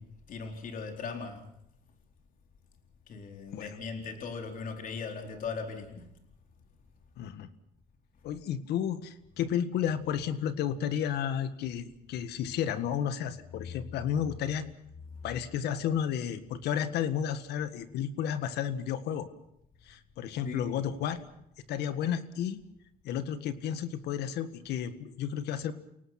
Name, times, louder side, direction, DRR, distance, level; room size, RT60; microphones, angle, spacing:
voice 1, 0.0-1.5 3.1-6.0 13.6-13.7 20.4-20.8, left 5 dB, 55° left, 4 dB, 4.1 m, -39 dB
voice 2, 7.2-7.5 8.2-14.7 15.2-19.3 19.8-21.3 21.7-22.6 23.0-25.7, left 9 dB, 75° left, 12 dB, 1.8 m, -32 dB
29.5 x 18.5 x 5.9 m, 0.78 s
cardioid pair, 110°, 17 cm